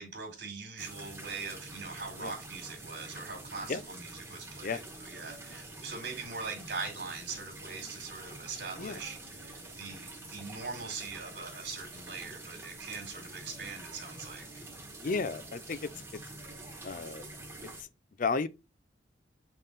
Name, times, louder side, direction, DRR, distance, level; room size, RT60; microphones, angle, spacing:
voice 1, 0.0-14.6, right 4 dB, 60° right, 1.9 m, -42 dB
sound 1, 0.8-17.8, right 2 dB, 15° right, 1.6 m, -47 dB
voice 2, 15.0-15.8 16.8-17.2 18.2-18.5, left 4 dB, 45° left, 0.5 m, -32 dB
7.5 x 3.7 x 4.0 m
head